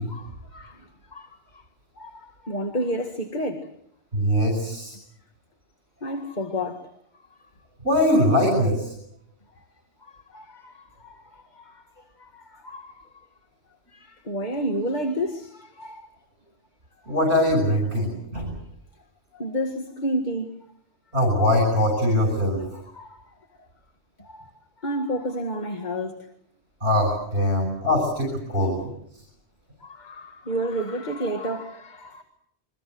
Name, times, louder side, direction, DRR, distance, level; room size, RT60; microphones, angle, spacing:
voice 1, 0.0-1.6 2.0-3.7 6.0-6.9 10.0-13.0 13.9-16.1 17.1-17.2 19.3-20.5 22.9-23.2 24.2-24.5 24.8-26.3 27.6-27.7 29.8-32.2, equal, 40° left, 2.0 m, -31 dB
voice 2, 4.1-4.9 7.8-8.9 17.1-18.5 21.1-22.8 26.8-29.2, left 1 dB, 65° right, 6.8 m, -22 dB
28.5 x 23.5 x 7.8 m
omnidirectional pair, 1.2 m